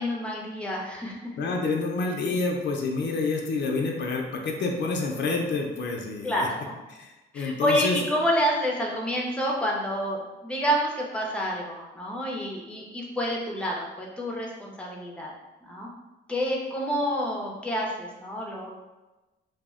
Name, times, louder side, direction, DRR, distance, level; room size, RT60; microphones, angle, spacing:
voice 1, 0.0-1.3 6.2-6.7 7.3-15.3 15.6-15.9 16.3-18.7, equal, 5° left, -2 dB, 0.5 m, -28 dB
voice 2, 1.4-6.3 7.0-8.0, left 3 dB, 65° left, 1 dB, 0.5 m, -28 dB
2.3 x 2.1 x 3.5 m, 1.1 s
cardioid pair, 110°, 19 cm